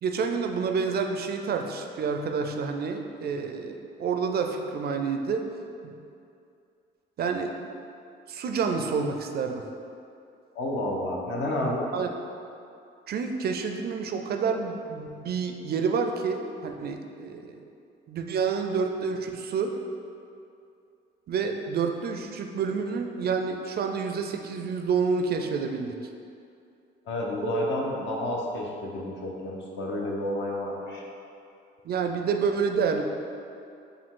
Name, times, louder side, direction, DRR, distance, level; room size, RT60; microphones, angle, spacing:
voice 1, 0.0-5.5 5.8-6.0 7.2-7.7 8.3-9.6 11.9-12.1 13.1-17.6 18.1-19.7 21.3-26.0 27.4-27.8 31.8-33.0, right 5 dB, 55° right, 4 dB, 0.4 m, -28 dB
voice 2, 10.5-11.9 27.1-31.0, left 1 dB, 70° left, -2 dB, 0.8 m, -30 dB
5.1 x 2.3 x 3.7 m, 2.5 s
cardioid pair, 90°, 20 cm